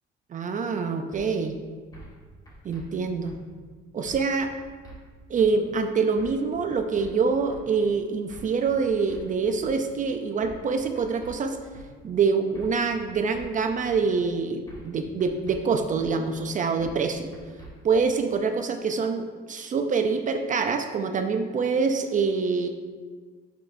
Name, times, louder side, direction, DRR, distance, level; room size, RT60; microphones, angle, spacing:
voice 1, 0.3-1.6 2.6-3.4 3.9-4.5 5.3-11.6 12.0-17.3 17.8-22.7, right 5 dB, 40° right, 6 dB, 0.5 m, -25 dB
sound 1, 1.1-1.2 1.9-2.2 2.5-2.8 3.2-3.4 4.0-4.3 4.6-5.0 5.4-5.5 6.2-6.4 6.7-7.1 7.5-7.6 8.3-8.5 8.8-9.2 9.6-9.7 10.4-10.7 10.9-11.3 11.7-11.9 12.5-12.8 13.1-13.5 13.9-14.0 14.7-14.9 15.2-15.6 16.0-16.1 16.8-17.0 17.3-17.7, right 1 dB, 20° left, 1.8 m, -45 dB
8.9 x 6.8 x 2.6 m, 1.5 s
cardioid pair, 105°, 20 cm